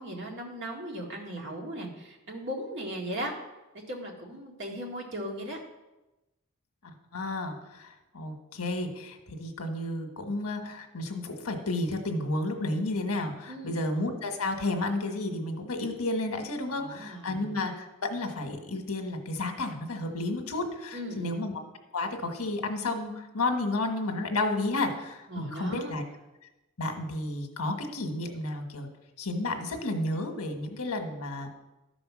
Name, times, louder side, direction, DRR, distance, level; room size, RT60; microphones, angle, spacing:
voice 1, 0.0-3.3 3.7-5.6 13.5-13.8 16.7-17.4 20.9-21.4 25.3-26.0, right 1 dB, 50° right, -1 dB, 2.1 m, -37 dB
voice 2, 7.1-21.6 21.9-26.0 26.8-28.9 29.2-31.5, left 2 dB, 90° left, 5 dB, 1.4 m, -32 dB
13.0 x 5.1 x 6.1 m, 1.0 s
head